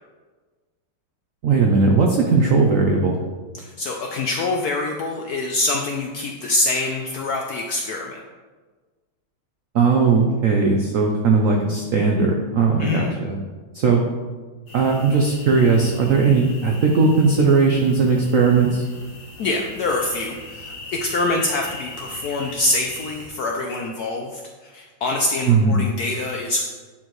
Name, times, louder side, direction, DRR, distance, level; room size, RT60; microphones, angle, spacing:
voice 1, 1.4-3.2 9.7-13.4 13.7-14.0 14.7-18.8 25.4-25.8, right 4 dB, 80° right, 1 dB, 0.7 m, -18 dB
voice 2, 3.6-8.2 12.8-13.2 19.4-26.7, left 2 dB, 75° left, 1 dB, 0.9 m, -25 dB
sound 1, 14.7-23.3, left 2 dB, 40° left, 1.1 m, -40 dB
9.6 x 4.4 x 3.1 m, 1.4 s
omnidirectional pair, 2.2 m